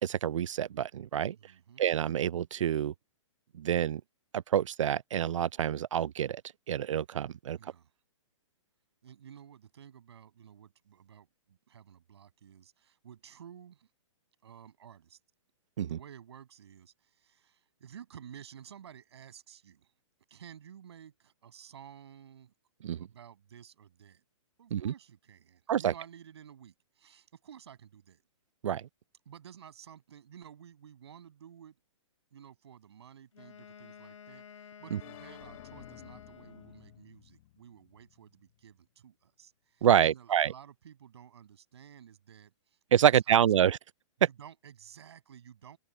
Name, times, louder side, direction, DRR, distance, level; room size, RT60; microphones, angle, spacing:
voice 1, 0.0-1.4 1.8-2.9 3.5-4.0 4.3-6.4 6.7-7.6 15.8-16.0 22.8-23.1 24.7-24.9 25.7-25.9 28.6-28.9 34.9-35.0 39.8-40.5 42.9-43.8 44.2-44.3, right 10 dB, 70° right, 0.4 m, -27 dB
voice 2, 1.3-1.8 7.6-7.9 9.0-13.9 14.4-15.2 15.8-19.9 20.3-22.5 23.0-24.2 24.6-28.2 29.3-31.8 32.3-43.5 44.2-45.8, right 9 dB, 55° right, 7.6 m, -53 dB
Wind instrument woodwind instrument, 33.3-37.0, left 7 dB, 75° left, 4.5 m, -52 dB
sound 1, 35.0-38.8, left 15 dB, 25° left, 1.1 m, -54 dB
open air
hypercardioid pair, 175°, 17 cm